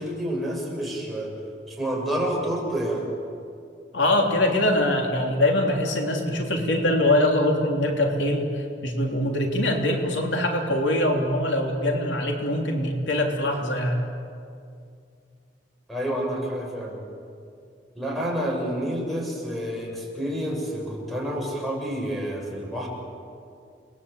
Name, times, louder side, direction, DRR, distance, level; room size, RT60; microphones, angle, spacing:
voice 1, 0.0-1.4 1.7-3.1 15.9-17.0 17.9-22.9, equal, ahead, -1 dB, 6.6 m, -29 dB
voice 2, 3.9-14.1, left 1 dB, 80° left, 1 dB, 3.5 m, -23 dB
29.5 x 21.5 x 8.5 m, 2.4 s
head